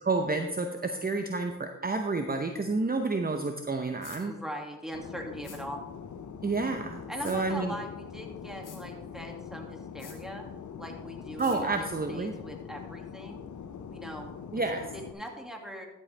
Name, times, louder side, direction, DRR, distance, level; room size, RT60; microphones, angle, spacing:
voice 1, 0.0-4.3 6.4-7.7 11.4-12.3 14.5-14.9, right 3 dB, 30° right, 5 dB, 0.8 m, -30 dB
sound 1, 4.0-4.2 5.4-5.6 7.2-7.4 8.6-8.8 10.0-10.2 11.4-11.6, left 6 dB, 90° left, 1.4 m, -48 dB
voice 2, 4.3-5.8 7.1-10.5 10.8-13.5 13.9-14.3 14.9-15.9, equal, ahead, 1 dB, 2.2 m, -41 dB
Fixed-wing aircraft airplane, 4.9-15.1, left 7 dB, 70° left, 0.7 m, -43 dB
13.0 x 7.7 x 3.3 m, 1.0 s
cardioid pair, 45°, 31 cm